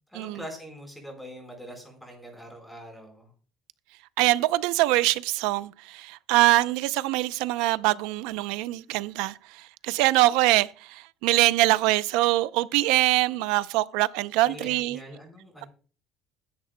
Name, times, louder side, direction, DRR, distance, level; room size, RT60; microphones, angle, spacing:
voice 1, 0.1-3.3 14.4-15.7, equal, ahead, 4.2 m, -43 dB
voice 2, 4.2-15.0, right 18 dB, 85° right, 0.5 m, -24 dB
21.0 x 10.5 x 2.2 m
cardioid pair, 175°, 0 cm